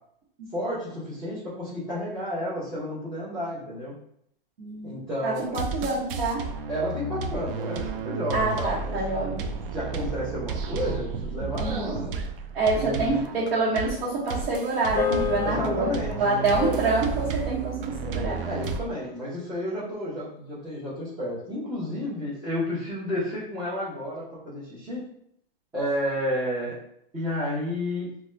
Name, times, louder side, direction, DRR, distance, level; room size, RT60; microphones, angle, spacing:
voice 1, 0.5-3.9 4.8-5.6 6.7-9.0 9.7-12.1 12.7-13.3 15.4-16.2 16.5-16.8 18.5-25.1 25.7-26.7 27.1-28.1, equal, 10° right, -13 dB, 0.6 m, -31 dB
voice 2, 4.6-6.4 8.3-9.4 11.6-12.0 12.5-15.9 16.2-18.4, right 3 dB, 85° right, -6 dB, 1.0 m, -26 dB
sound 1, 5.4-18.8, right 4 dB, 70° right, 0.5 m, -32 dB
sound 2, 14.9-19.5, left 8 dB, 35° left, 0.6 m, -34 dB
2.6 x 2.2 x 3.1 m, 0.72 s
supercardioid pair, 165°, 29 cm